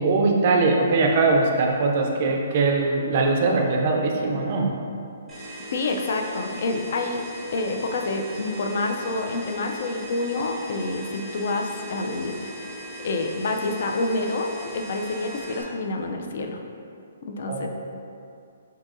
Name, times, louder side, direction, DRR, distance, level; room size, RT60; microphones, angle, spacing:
voice 1, 0.0-4.7 17.5-17.7, right 3 dB, 30° right, 1 dB, 0.4 m, -21 dB
sound 1, 5.3-15.6, equal, ahead, 0.7 m, -39 dB
voice 2, 5.7-16.6 17.2-17.7, left 2 dB, 45° left, 3 dB, 0.4 m, -28 dB
7.4 x 2.7 x 2.5 m, 2.5 s
hypercardioid pair, 175°, 0 cm